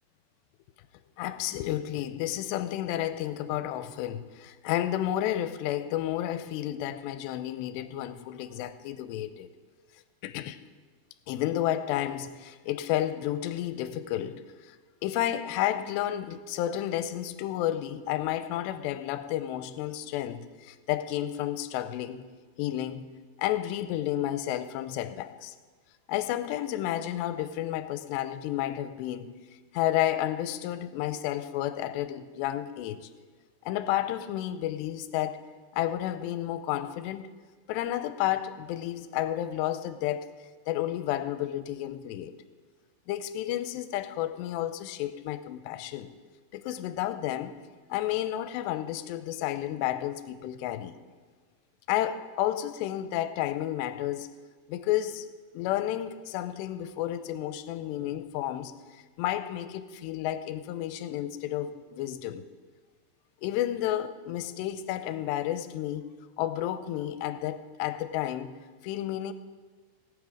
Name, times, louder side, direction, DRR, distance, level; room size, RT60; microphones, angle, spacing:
voice 1, 1.2-9.5 10.2-10.6 11.3-14.8 15.0-22.3 22.6-25.5 26.1-29.3 29.7-33.0 33.7-35.4 35.7-37.3 37.7-42.3 43.1-46.1 46.5-47.6 47.9-51.0 51.9-54.3 54.7-55.3 55.5-62.4 63.4-66.0 66.4-69.3, left 12 dB, 85° left, 2.7 m, -31 dB
18.0 x 8.7 x 5.0 m
omnidirectional pair, 5.0 m